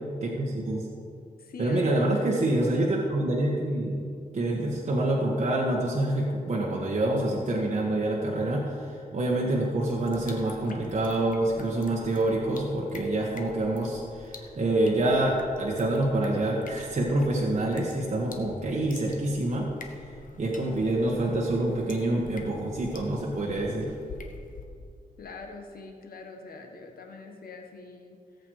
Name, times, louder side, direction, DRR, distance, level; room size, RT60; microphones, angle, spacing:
voice 1, 0.2-0.9 1.6-4.1 4.3-19.7 20.4-23.9, right 1 dB, 50° right, -3 dB, 1.6 m, -27 dB
voice 2, 1.4-2.4 24.7-24.8 25.2-28.2, left 3 dB, 90° left, 3 dB, 1.4 m, -43 dB
sound 1, 9.8-24.6, left 3 dB, 65° left, 1.2 m, -47 dB
17.5 x 8.0 x 4.8 m, 2.3 s
wide cardioid pair, 120°, 15 cm